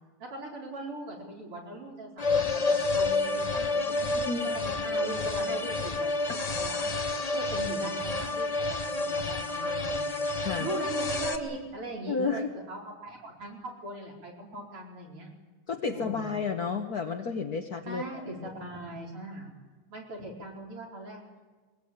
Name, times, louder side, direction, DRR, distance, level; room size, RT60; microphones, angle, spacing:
voice 1, 0.2-4.1 4.5-6.1 6.4-6.9 7.3-10.2 10.6-15.3 15.9-16.4 17.9-19.5 19.9-21.2, right 1 dB, 80° right, -1 dB, 5.5 m, -40 dB
sound 1, 2.2-11.4, left 3 dB, 35° left, 0.6 m, -29 dB
voice 2, 4.1-4.6 6.3-6.4 10.4-10.7 12.1-12.5 15.7-18.5, left 5 dB, 50° left, 3 dB, 1.5 m, -32 dB
22.0 x 21.5 x 8.8 m, 1.3 s
omnidirectional pair, 2.4 m